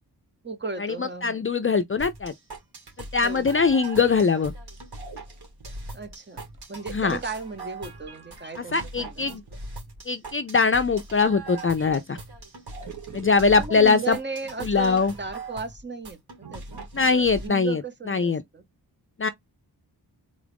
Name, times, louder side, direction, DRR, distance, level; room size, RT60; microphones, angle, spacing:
voice 1, 0.4-1.4 3.2-3.6 5.9-6.4 6.7-9.3 13.5-16.2 16.5-16.8 17.1-18.6, right 4 dB, 30° right, 0.9 m, -35 dB
voice 2, 1.0-2.3 3.1-4.5 6.9-7.2 8.7-9.4 10.1-12.2 13.1-14.2 14.6-15.1 16.9-17.8 18.1-18.4 19.2-19.3, left 4 dB, 35° left, 0.4 m, -22 dB
sound 1, 2.0-17.5, right 2 dB, 80° right, 1.8 m, -41 dB
sound 2, 4.8-5.0 5.3-5.4 6.5-7.5 7.9-8.9 11.6-11.8 12.8-15.7, right 8 dB, 50° right, 1.1 m, -46 dB
3.8 x 2.4 x 3.4 m
wide cardioid pair, 90°, 38 cm